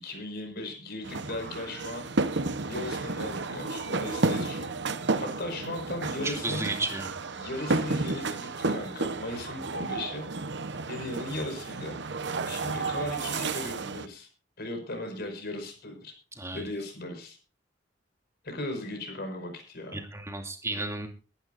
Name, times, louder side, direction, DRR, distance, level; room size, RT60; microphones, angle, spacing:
voice 1, 0.0-2.1 2.7-4.7 5.2-6.7 7.4-10.3 10.9-12.0 12.5-14.3 14.6-16.1 16.5-17.4 18.4-20.0, left 1 dB, 55° left, 5 dB, 5.5 m, -37 dB
sound 1, 1.0-14.1, right 3 dB, 65° right, 1.0 m, -32 dB
voice 2, 6.2-7.1 16.3-16.6 19.9-21.1, right 2 dB, 15° right, 4 dB, 2.5 m, -33 dB
21.5 x 12.0 x 2.6 m, 0.35 s
head